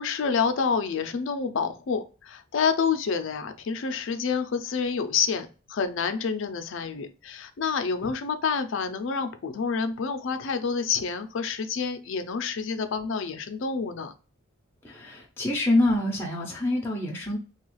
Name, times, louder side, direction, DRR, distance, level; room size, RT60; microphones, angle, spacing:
voice 1, 0.0-14.1, left 5 dB, 65° left, 9 dB, 0.4 m, -28 dB
voice 2, 14.8-17.4, left 1 dB, 10° left, -2 dB, 0.5 m, -26 dB
3.0 x 2.3 x 3.0 m, 0.34 s
head